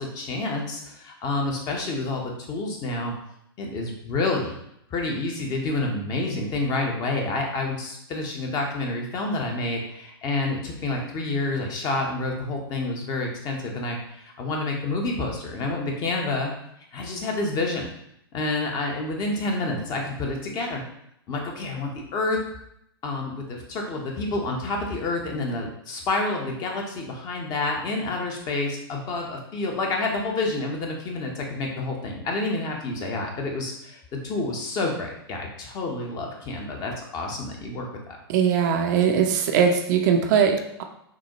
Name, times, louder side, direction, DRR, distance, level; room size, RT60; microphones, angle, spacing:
voice 1, 0.0-3.1 3.6-4.5 4.9-16.5 16.9-17.9 18.3-20.8 21.3-22.4 23.0-37.9, left 2 dB, 30° left, 1 dB, 0.8 m, -28 dB
voice 2, 38.3-40.8, right 7 dB, 45° right, 3 dB, 0.5 m, -21 dB
6.0 x 2.1 x 2.9 m, 0.75 s
figure-of-eight pair, 100°, 13 cm